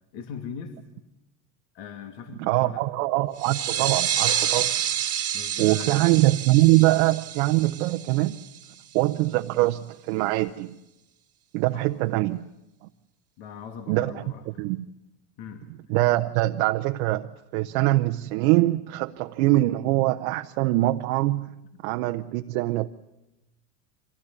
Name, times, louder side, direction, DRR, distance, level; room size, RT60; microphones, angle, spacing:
voice 1, 0.1-0.8 1.7-2.8 5.3-6.1 11.7-11.9 13.4-14.6 15.4-15.7, left 7 dB, 60° left, 5 dB, 2.7 m, -40 dB
voice 2, 2.4-4.7 5.6-8.4 8.9-10.8 11.5-12.5 12.8-12.9 13.9-14.9 15.9-21.5 21.8-22.9, right 18 dB, 65° right, 6 dB, 1.0 m, -23 dB
sound 1, 3.4-8.7, right 10 dB, 30° right, 1.7 m, -28 dB
24.5 x 16.5 x 9.7 m, 0.95 s
supercardioid pair, 105°, 45 cm